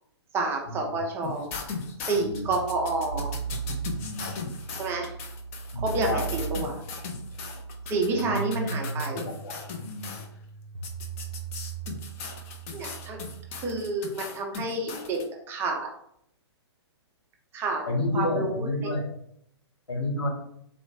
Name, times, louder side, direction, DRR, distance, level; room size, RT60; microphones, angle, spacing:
voice 1, 0.3-1.6 2.0-3.3 4.8-5.1 5.8-6.8 7.9-9.3 12.7-13.2 13.6-15.2 15.5-15.9 17.5-17.8 18.1-18.9, right 2 dB, 15° right, 1 dB, 0.5 m, -29 dB
sound 1, 1.2-10.3 10.8-15.2, left 5 dB, 30° left, 0.5 m, -38 dB
sound 2, 2.3-13.7, right 5 dB, 85° right, 0.5 m, -37 dB
voice 2, 3.9-4.3 5.7-6.3 8.3-8.4 8.9-9.5 9.8-10.1 17.9-19.0 19.9-20.3, left 2 dB, 70° left, 1 dB, 1.0 m, -30 dB
4.0 x 2.3 x 3.1 m, 0.70 s
figure-of-eight pair, 120°, 14 cm